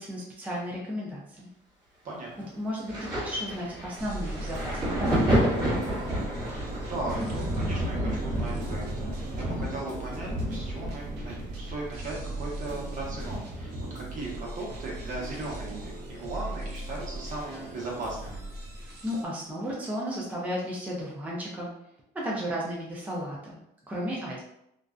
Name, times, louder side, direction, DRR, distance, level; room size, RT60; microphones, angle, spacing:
voice 1, 0.0-1.5 2.5-5.9 18.8-21.7 22.1-23.6 23.9-24.4, equal, 10° right, -4 dB, 0.5 m, -34 dB
voice 2, 2.0-2.5 6.5-18.4, right 2 dB, 50° right, -3 dB, 0.9 m, -38 dB
Thunder, 2.9-16.2 16.5-17.8 18.7-18.8, right 1 dB, 25° right, 1.2 m, -31 dB
sound 1, 4.0-19.2, right 1 dB, 80° right, 0.6 m, -39 dB
2.5 x 2.1 x 2.3 m, 0.80 s
cardioid pair, 110°, 17 cm